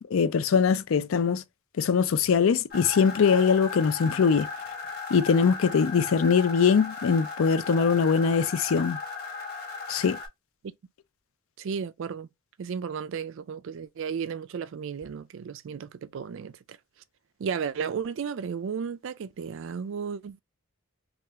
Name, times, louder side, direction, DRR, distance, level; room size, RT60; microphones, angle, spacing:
voice 1, 0.1-1.4 1.8-4.5 5.1-9.0 9.9-10.2, left 6 dB, 65° left, 0.4 m, -22 dB
sound 1, 2.7-10.3, left 4 dB, 45° left, 1.3 m, -37 dB
voice 2, 11.6-12.3 12.6-16.8 17.4-20.4, right 6 dB, 60° right, 0.3 m, -34 dB
3.3 x 2.4 x 2.9 m
head